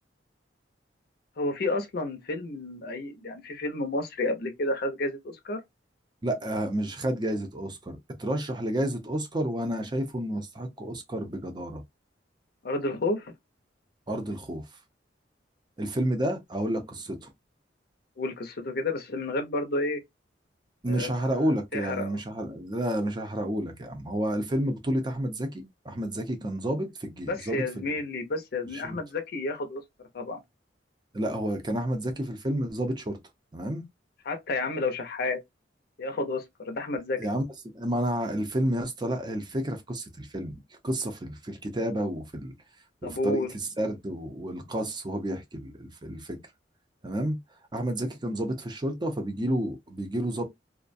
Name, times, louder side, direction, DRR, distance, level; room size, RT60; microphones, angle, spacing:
voice 1, 1.4-5.6 12.6-13.3 18.2-20.0 20.9-22.2 27.3-29.8 30.1-30.4 34.3-35.4 36.0-37.2 43.0-43.5, left 2 dB, 60° left, 0.6 m, -31 dB
voice 2, 6.2-11.8 14.1-14.7 15.8-17.3 20.8-28.0 28.7-29.0 31.1-33.2 33.5-33.8 37.2-37.4 37.7-42.5 43.0-43.5 43.8-46.4 47.0-47.4 47.7-50.4, right 1 dB, 25° right, 0.6 m, -30 dB
2.3 x 2.1 x 2.5 m
head